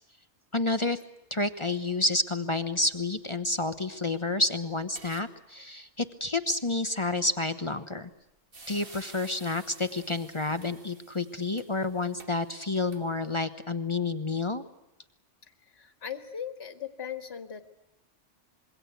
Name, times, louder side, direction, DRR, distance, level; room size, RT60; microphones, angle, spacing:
voice 1, 0.5-1.0 1.3-8.1 8.7-14.6, left 2 dB, 25° left, 10 dB, 1.1 m, -29 dB
sound 1, 4.9-5.3 5.6-5.7 8.0-8.2 8.5-13.4, right 3 dB, 55° right, 2.2 m, -51 dB
voice 2, 15.4-17.7, left 8 dB, 65° left, 8 dB, 1.9 m, -39 dB
26.5 x 22.5 x 8.2 m, 0.88 s
omnidirectional pair, 1.2 m